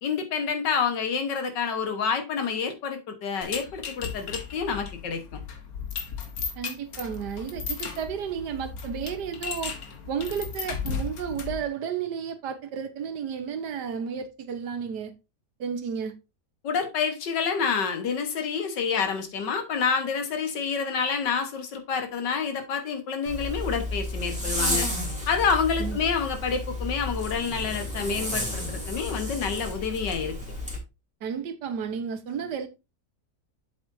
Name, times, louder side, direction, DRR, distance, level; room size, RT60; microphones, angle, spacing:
voice 1, 0.0-5.4 16.6-24.9 25.3-30.4, left 6 dB, 80° left, 1.9 m, -28 dB
sound 1, 3.4-11.7, left 6 dB, 60° left, 1.6 m, -35 dB
voice 2, 6.6-9.7 10.1-15.1 15.6-16.1 25.8-26.0 31.2-32.7, right 7 dB, 75° right, 1.6 m, -32 dB
Zipper (clothing), 23.2-30.8, left 1 dB, 5° right, 3.3 m, -32 dB
7.9 x 7.3 x 2.6 m
omnidirectional pair, 1.8 m